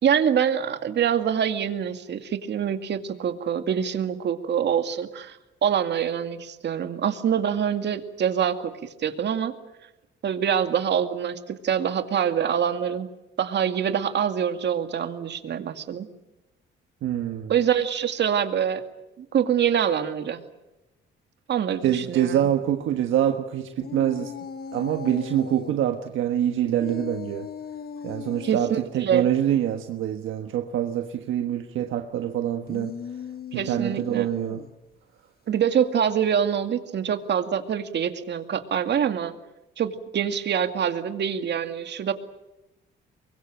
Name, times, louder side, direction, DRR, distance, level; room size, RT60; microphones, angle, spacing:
voice 1, 0.0-8.7 9.0-9.5 10.2-13.1 13.4-16.1 17.5-18.8 19.2-20.4 21.5-22.5 28.4-29.2 33.5-34.3 35.5-39.3 39.8-42.1, right 8 dB, 60° right, 8 dB, 2.3 m, -25 dB
voice 2, 17.0-17.5 21.8-24.3 24.7-27.5 28.0-32.9 33.5-34.6, right 11 dB, 80° right, 6 dB, 1.4 m, -25 dB
sound 1, 23.8-25.8 26.8-28.7 32.5-34.8, left 7 dB, 50° left, 1.4 m, -38 dB
23.5 x 22.0 x 9.0 m, 0.97 s
cardioid pair, 90°, 20 cm